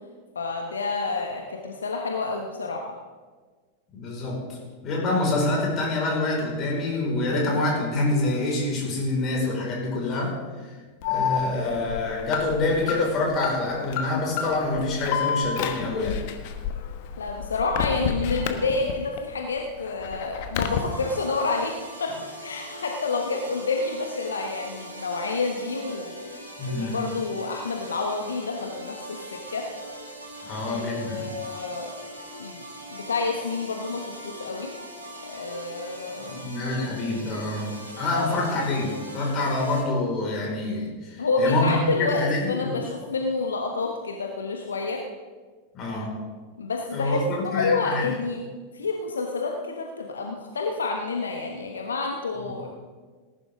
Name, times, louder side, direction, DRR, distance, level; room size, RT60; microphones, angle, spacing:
voice 1, 0.3-2.9 17.2-22.1 22.4-26.2 26.7-29.7 30.5-31.9 32.4-32.6 32.9-34.7 35.2-36.5 38.1-38.4 41.2-45.0 46.6-47.2 47.4-48.4 48.7-52.7, left 3 dB, 70° left, 2 dB, 1.1 m, -29 dB
voice 2, 3.9-10.7 11.0-16.2 26.6-27.0 30.4-31.3 36.2-37.7 38.0-42.9 45.7-46.2 46.9-48.1 52.4-52.6, left 2 dB, 30° left, -2 dB, 4.9 m, -26 dB
Alarm, 11.0-19.2 19.6-20.8, left 7 dB, 50° left, 1.2 m, -30 dB
sound 1, 20.6-39.8, equal, 85° right, 2.6 m, -41 dB
19.0 x 11.0 x 3.6 m, 1.4 s
figure-of-eight pair, 90°, 0 cm